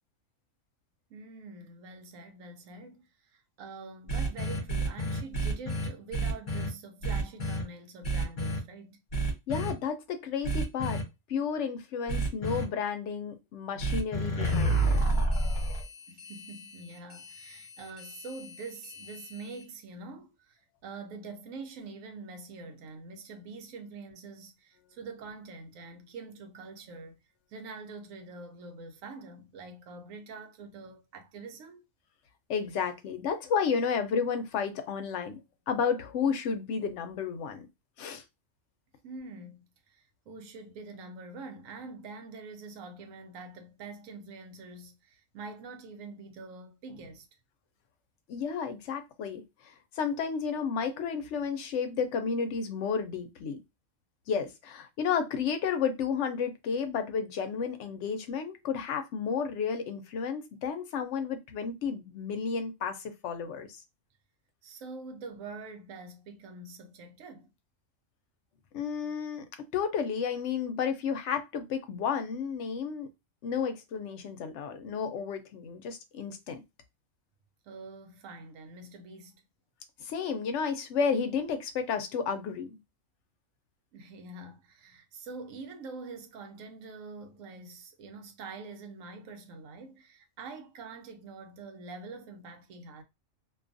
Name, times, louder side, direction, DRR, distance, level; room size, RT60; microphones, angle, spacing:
voice 1, 1.1-9.0 16.1-27.2 27.5-31.8 39.0-47.3 64.6-67.5 77.6-79.4 83.9-93.0, right 3 dB, 90° right, 1.0 m, -45 dB
sound 1, 4.1-6.7 7.0-7.6 8.0-8.6 9.1-9.7 10.4-11.0 12.1-12.6 13.8-19.6, right 2 dB, 45° left, 0.9 m, -30 dB
voice 2, 9.5-11.0 11.3-15.0 32.5-35.4 35.7-37.7 38.0-38.2 48.3-53.6 54.3-63.7 68.7-69.4 69.7-73.1 73.4-76.6 80.0-82.8, left 6 dB, 70° left, 0.8 m, -32 dB
2.5 x 2.3 x 2.5 m
omnidirectional pair, 1.3 m